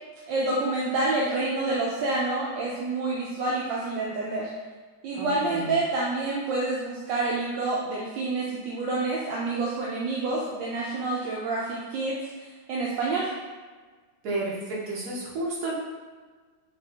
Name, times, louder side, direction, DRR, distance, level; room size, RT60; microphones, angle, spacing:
voice 1, 0.3-4.5 5.0-12.2 12.7-13.3, right 2 dB, 75° right, -5 dB, 1.3 m, -28 dB
voice 2, 5.1-5.8 14.2-15.7, right 2 dB, 60° right, -5 dB, 1.5 m, -32 dB
5.7 x 2.4 x 3.4 m, 1.4 s
omnidirectional pair, 2.1 m